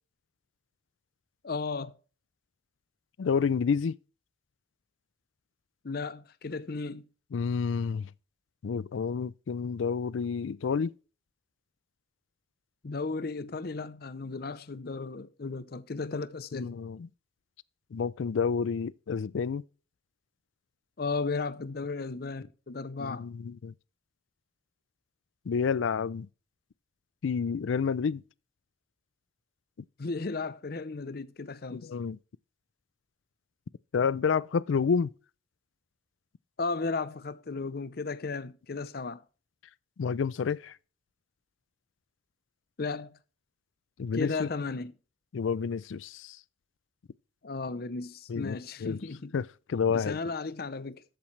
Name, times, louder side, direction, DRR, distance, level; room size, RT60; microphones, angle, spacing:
voice 1, 1.4-2.0 5.8-7.1 12.8-16.7 21.0-23.2 30.0-31.9 36.6-39.2 42.8-43.2 44.1-44.9 47.4-49.3 49.9-51.0, left 4 dB, 55° left, 0.6 m, -35 dB
voice 2, 3.2-4.0 7.3-8.1 8.6-10.9 16.5-17.1 17.9-19.6 23.0-23.7 25.5-26.3 27.2-28.2 31.7-32.2 33.9-35.1 40.0-40.8 44.0-44.5 45.3-46.4 48.3-49.0 49.3-50.2, left 6 dB, 90° left, 0.4 m, -29 dB
13.0 x 8.7 x 3.2 m
head